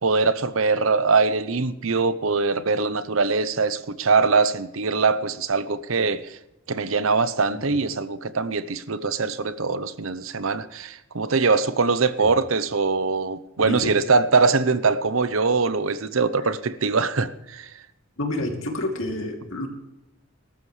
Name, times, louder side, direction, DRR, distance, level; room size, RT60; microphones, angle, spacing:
voice 1, 0.0-6.4 6.7-17.7, right 4 dB, 70° right, 14 dB, 0.8 m, -22 dB
voice 2, 13.6-13.9 18.2-19.7, left 1 dB, 65° left, 2 dB, 2.9 m, -29 dB
21.0 x 12.5 x 3.3 m, 0.87 s
head